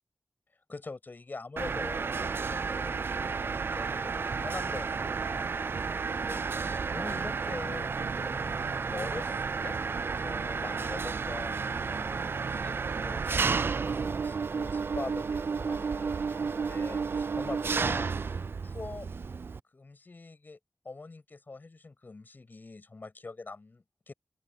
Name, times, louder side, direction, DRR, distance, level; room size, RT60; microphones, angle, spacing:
voice 1, 0.7-9.8 10.2-18.4 18.6-19.1 19.7-20.6 20.9-24.1, left 3 dB, 45° left, 6.8 m, -44 dB
Mechanisms, 1.6-19.6, right 5 dB, 60° right, 0.4 m, -32 dB
open air
wide cardioid pair, 85°, 4 cm